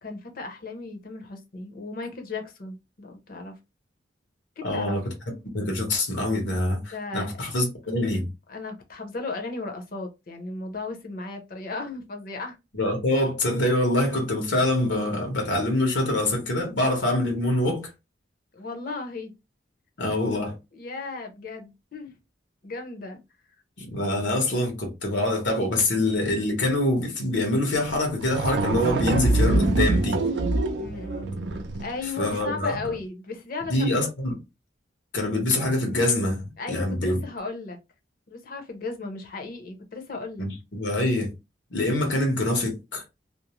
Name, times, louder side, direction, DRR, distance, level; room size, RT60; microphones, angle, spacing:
voice 1, 0.0-3.6 4.6-5.0 6.9-7.5 8.5-12.6 18.5-19.3 20.7-22.1 22.6-23.2 30.8-31.4 31.8-34.0 36.6-37.8 38.3-40.5, left 3 dB, 50° left, 0.7 m, -35 dB
voice 2, 4.6-5.0 5.5-8.3 12.7-17.9 20.0-20.5 23.8-30.2 32.2-32.8 33.7-34.3 35.1-37.2 40.4-41.3 41.7-43.0, left 1 dB, 90° left, 1.0 m, -25 dB
sound 1, 27.9-28.0 28.2-32.0, right 2 dB, 75° right, 0.5 m, -24 dB
2.6 x 2.0 x 3.0 m
head